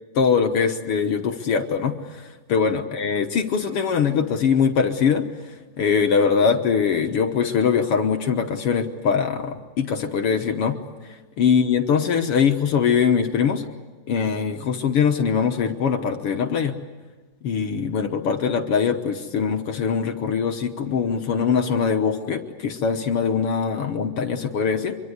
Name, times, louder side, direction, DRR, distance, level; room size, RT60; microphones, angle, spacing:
voice 1, 0.2-5.2 5.8-10.8 11.4-13.7 14.1-16.8 17.4-25.0, left 6 dB, 60° left, 5 dB, 1.6 m, -22 dB
25.0 x 24.0 x 8.2 m, 1.3 s
omnidirectional pair, 3.9 m